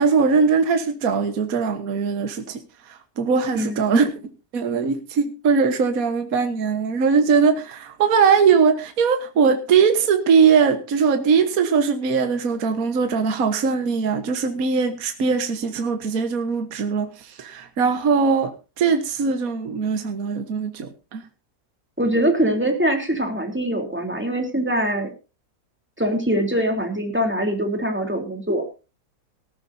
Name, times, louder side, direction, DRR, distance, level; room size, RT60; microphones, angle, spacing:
voice 1, 0.0-2.6 3.2-4.1 4.5-21.2, right 5 dB, 60° right, 8 dB, 1.7 m, -20 dB
voice 2, 22.0-25.1 26.0-28.6, right 1 dB, 5° right, 3 dB, 3.4 m, -23 dB
18.0 x 14.5 x 2.7 m, 0.31 s
omnidirectional pair, 1.7 m